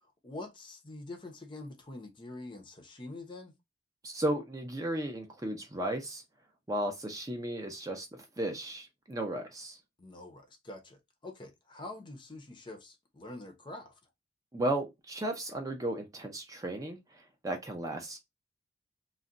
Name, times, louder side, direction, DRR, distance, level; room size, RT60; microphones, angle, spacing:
voice 1, 0.0-3.5 10.0-14.0, left 2 dB, 25° left, 0.6 m, -45 dB
voice 2, 4.0-6.2 6.7-9.8 14.5-18.2, right 1 dB, 20° right, 0.5 m, -35 dB
2.4 x 2.1 x 3.7 m
head